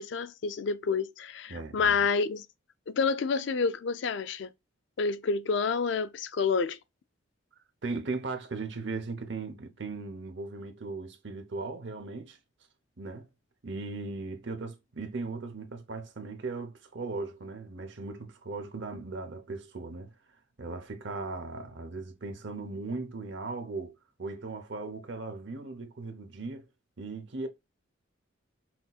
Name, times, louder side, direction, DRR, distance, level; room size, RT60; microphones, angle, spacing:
voice 1, 0.0-2.5 2.9-4.5 5.0-6.8, left 5 dB, 60° left, 0.4 m, -28 dB
voice 2, 1.5-2.1 7.8-12.4 13.0-13.3 13.6-20.1 20.6-26.7 27.0-27.5, right 3 dB, 60° right, 0.8 m, -38 dB
5.9 x 2.8 x 2.4 m
head